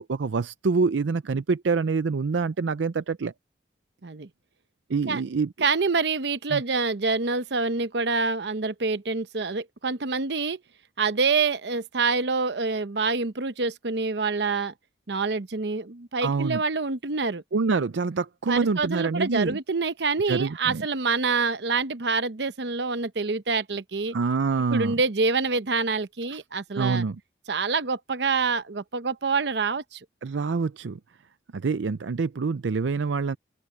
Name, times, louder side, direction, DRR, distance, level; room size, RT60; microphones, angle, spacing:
voice 1, 0.0-3.3 4.9-5.5 6.5-6.6 16.2-16.6 17.5-19.6 20.3-20.8 24.1-25.0 26.3-26.4 26.7-27.2 30.2-31.0 31.5-33.4, right 4 dB, 90° right, 0.5 m, -26 dB
voice 2, 5.6-10.6 11.0-14.7 15.1-17.4 18.5-24.2 24.7-27.0 27.5-30.0, right 4 dB, 70° right, 0.8 m, -26 dB
open air
head